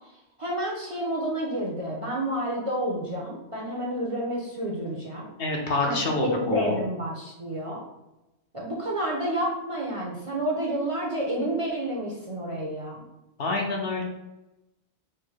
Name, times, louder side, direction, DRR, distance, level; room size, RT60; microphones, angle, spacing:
voice 1, 0.4-5.3 5.8-7.8 8.5-13.0, right 1 dB, 35° right, -3 dB, 0.7 m, -29 dB
voice 2, 5.4-6.8 13.4-14.0, left 3 dB, 60° left, 0 dB, 0.9 m, -27 dB
4.6 x 2.1 x 4.5 m, 0.96 s
omnidirectional pair, 1.2 m